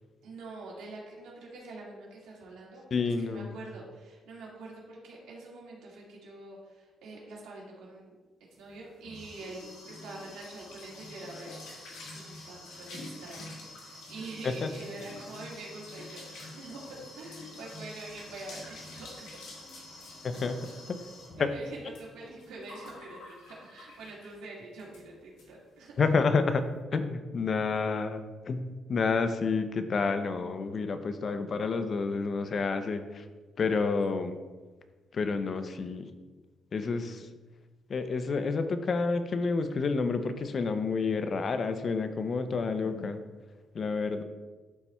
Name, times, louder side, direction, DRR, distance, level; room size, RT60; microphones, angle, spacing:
voice 1, 0.2-8.1 8.6-11.6 12.1-19.3 20.3-20.7 21.4-25.9 27.7-28.0, right 2 dB, 90° right, -3 dB, 1.9 m, -45 dB
voice 2, 2.9-3.5 14.4-14.7 20.2-20.5 21.4-21.5 26.0-26.6 26.9-33.2 33.6-34.4 35.1-36.1 36.7-37.3 37.9-43.2 43.7-44.2, left 4 dB, 45° left, 9 dB, 0.5 m, -29 dB
sound 1, 8.7-24.4 24.8-25.0 25.4-25.5 25.8-26.1, left 2 dB, 90° left, 1.5 m, -47 dB
11.5 x 4.2 x 2.3 m, 1.3 s
cardioid pair, 90°, 0 cm